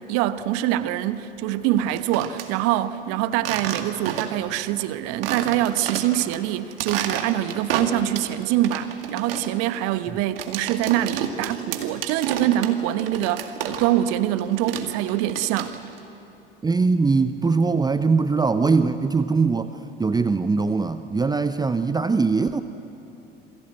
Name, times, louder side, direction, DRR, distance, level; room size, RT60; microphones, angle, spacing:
voice 1, 0.0-15.8, right 13 dB, 55° right, 1.1 m, -24 dB
sound 1, 1.8-2.5 3.4-4.5 4.8-4.9 5.2-6.4 6.7-8.3 8.6-14.1 14.4-16.0, right 8 dB, 70° right, 2.1 m, -31 dB
voice 2, 16.6-19.7 20.0-22.6, right 4 dB, 15° right, 0.8 m, -21 dB
27.5 x 24.0 x 8.1 m
figure-of-eight pair, 65°, 29 cm